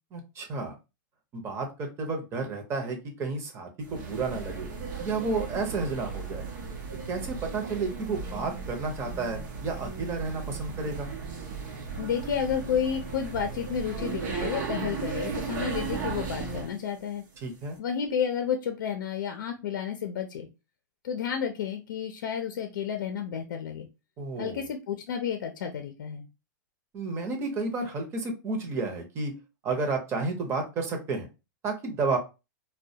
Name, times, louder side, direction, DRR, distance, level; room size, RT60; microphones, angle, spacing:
voice 1, 0.1-0.7 1.3-4.7 5.0-6.4 7.1-11.1 17.4-17.8 24.2-24.6 26.9-29.4 29.6-31.3 31.6-32.2, right 3 dB, 25° right, 3 dB, 0.7 m, -31 dB
sound 1, 3.8-16.8, right 5 dB, 70° right, 0.7 m, -36 dB
voice 2, 12.0-17.2 17.8-20.5 21.0-23.9 24.4-26.2, left 8 dB, 85° left, 5 dB, 0.5 m, -31 dB
2.2 x 2.1 x 2.7 m, 0.27 s
hypercardioid pair, 140°, 10 cm